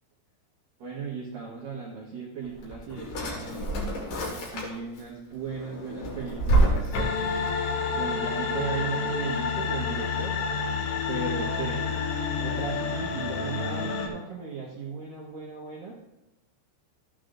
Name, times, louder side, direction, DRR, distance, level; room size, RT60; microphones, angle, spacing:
voice 1, 0.8-3.7 4.3-7.0 7.9-10.3 11.1-11.9 12.4-15.9, right 5 dB, 75° right, -4 dB, 2.0 m, -36 dB
Drawer open or close, 2.4-5.0 5.4-7.5, right 2 dB, 55° left, 2.5 m, -27 dB
sound 1, 6.9-14.1, left 5 dB, 80° left, 3.8 m, -29 dB
13.5 x 9.3 x 2.5 m, 0.95 s
omnidirectional pair, 6.0 m